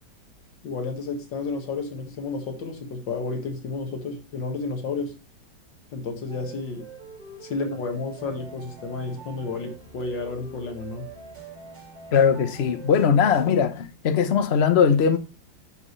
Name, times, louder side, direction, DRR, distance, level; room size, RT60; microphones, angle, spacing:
voice 1, 0.6-5.2 5.9-6.9 7.4-11.1, left 3 dB, 75° left, 2.3 m, -31 dB
sound 1, 6.3-13.6, right 4 dB, 35° right, 4.0 m, -44 dB
voice 2, 12.1-15.2, left 7 dB, 50° left, 0.8 m, -20 dB
10.5 x 5.4 x 3.1 m
omnidirectional pair, 2.0 m